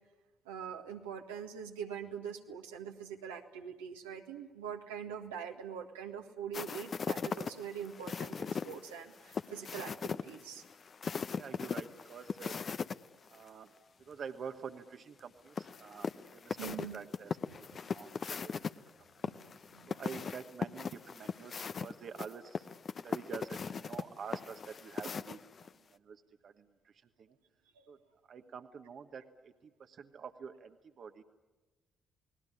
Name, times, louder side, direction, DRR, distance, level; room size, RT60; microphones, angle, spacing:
voice 1, 0.4-10.6 16.6-17.0 17.7-17.8 19.2-20.0 27.7-27.9, right 8 dB, 80° right, 2 dB, 1.7 m, -43 dB
sound 1, 6.5-13.0 13.3-13.4 15.6-18.7 19.2-25.7, left 6 dB, 45° left, 0.8 m, -39 dB
voice 2, 11.3-12.6 13.3-13.7 14.0-18.7 19.9-22.7 23.0-25.4 25.7-27.3 27.9-28.0 28.3-31.2, right 6 dB, 50° right, 7 dB, 1.3 m, -48 dB
29.5 x 20.0 x 9.8 m, 1.2 s
hypercardioid pair, 45°, 0 cm